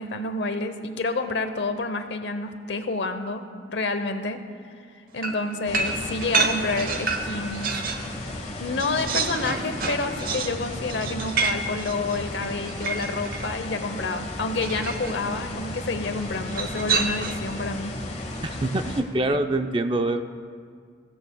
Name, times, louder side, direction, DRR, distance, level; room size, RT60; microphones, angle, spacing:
voice 1, 0.0-3.4 3.7-4.4 5.1-7.8 8.6-17.9, left 3 dB, 80° left, 8 dB, 0.8 m, -29 dB
sound 1, 5.2-8.1 8.5-13.5 14.6-15.2 16.5-17.5, right 4 dB, 55° right, 0.9 m, -29 dB
sound 2, 5.7-19.0, left 1 dB, 40° left, 1.2 m, -35 dB
voice 2, 18.4-20.2, right 2 dB, 30° right, 7 dB, 0.5 m, -25 dB
21.0 x 16.0 x 2.3 m, 2.1 s
head